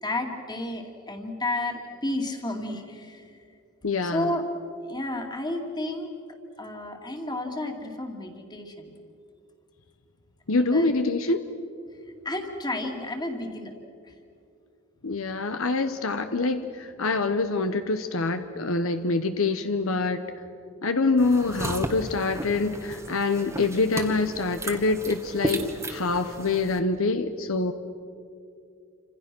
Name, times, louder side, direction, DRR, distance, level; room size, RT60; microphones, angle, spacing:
voice 1, 0.0-3.4 4.0-4.5 4.8-6.1 6.6-9.0 10.5-11.0 12.2-13.7 14.0-14.1, left 2 dB, 20° left, 4 dB, 2.3 m, -32 dB
voice 2, 3.8-4.3 10.5-11.5 15.0-20.2 20.8-25.6 25.9-27.7, left 3 dB, 65° left, 8 dB, 1.0 m, -25 dB
sound 1, 21.2-26.8, right 1 dB, 15° right, 1.4 m, -34 dB
29.0 x 26.5 x 6.2 m, 2.5 s
head